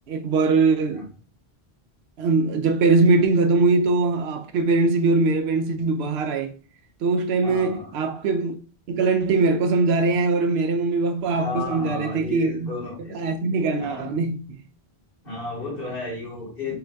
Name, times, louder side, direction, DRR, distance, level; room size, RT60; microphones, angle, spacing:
voice 1, 0.1-1.1 2.2-6.5 7.0-8.6 8.9-12.7 13.0-14.6, right 3 dB, 85° right, 0.8 m, -21 dB
voice 2, 7.4-7.9 11.3-13.2 13.8-14.1 15.2-16.7, left 2 dB, 60° left, 2.2 m, -33 dB
5.7 x 2.6 x 2.2 m
omnidirectional pair, 1.1 m